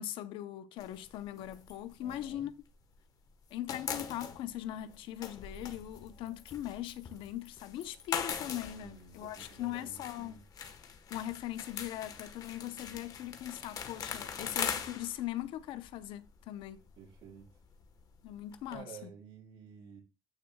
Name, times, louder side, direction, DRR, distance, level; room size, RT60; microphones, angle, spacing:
voice 1, 0.0-2.5 3.5-10.4 11.1-16.8 18.2-19.1, left 13 dB, 85° left, 0.7 m, -40 dB
sound 1, 0.8-3.0 3.3-18.8, left 7 dB, 45° left, 1.2 m, -42 dB
voice 2, 2.0-2.5 8.8-10.4 16.9-17.5 18.7-20.0, right 7 dB, 75° right, 6.3 m, -51 dB
14.5 x 6.3 x 2.3 m
cardioid pair, 140°, 9 cm